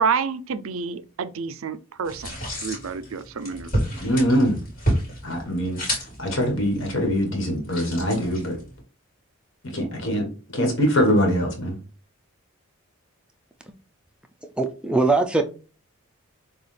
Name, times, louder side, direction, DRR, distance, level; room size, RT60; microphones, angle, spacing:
voice 1, 0.0-2.3 2.6-3.7, right 5 dB, 70° right, 0.4 m, -28 dB
sound 1, 2.1-8.8, equal, 40° left, 2.2 m, -30 dB
voice 2, 4.0-4.6 5.2-8.6 9.7-10.3 10.5-11.8, equal, 55° left, 1.6 m, -23 dB
voice 3, 14.6-15.4, right 3 dB, 5° right, 0.4 m, -21 dB
6.6 x 2.4 x 3.3 m
head